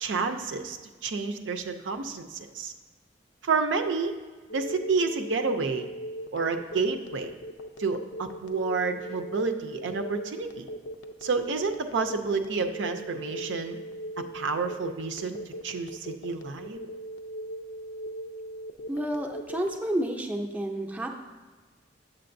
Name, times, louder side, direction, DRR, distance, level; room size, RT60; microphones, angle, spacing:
voice 1, 0.0-2.7 3.4-4.1 4.5-5.9 6.3-7.3 7.8-10.7 11.2-13.8 14.3-15.4 15.6-16.8, right 4 dB, 80° right, 7 dB, 0.5 m, -29 dB
Telephone, 4.5-19.8, right 1 dB, 80° left, 0.5 m, -39 dB
voice 2, 18.9-21.1, right 1 dB, 10° right, 1 dB, 0.5 m, -30 dB
7.6 x 7.4 x 2.6 m, 1.3 s
head